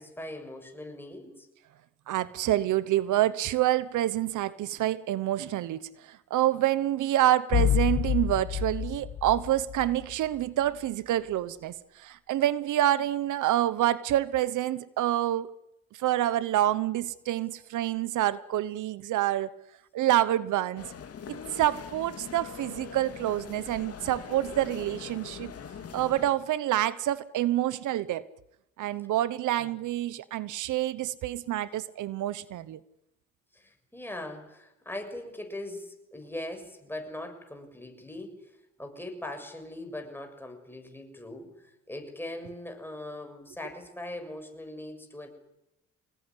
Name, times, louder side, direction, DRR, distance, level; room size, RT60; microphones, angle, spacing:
voice 1, 0.0-1.5 29.6-29.7 33.5-38.5 38.8-45.3, left 1 dB, 5° left, 5 dB, 6.9 m, -40 dB
voice 2, 2.1-15.5 15.9-19.6 19.9-20.9 21.3-25.5 25.9-28.3 28.8-32.8, right 13 dB, 80° right, 17 dB, 1.0 m, -27 dB
sound 1, 7.5-10.4, left 10 dB, 65° left, 1.9 m, -28 dB
sound 2, 20.8-26.3, left 7 dB, 50° left, 2.6 m, -42 dB
26.0 x 19.5 x 9.9 m, 0.87 s
cardioid pair, 90°, 30 cm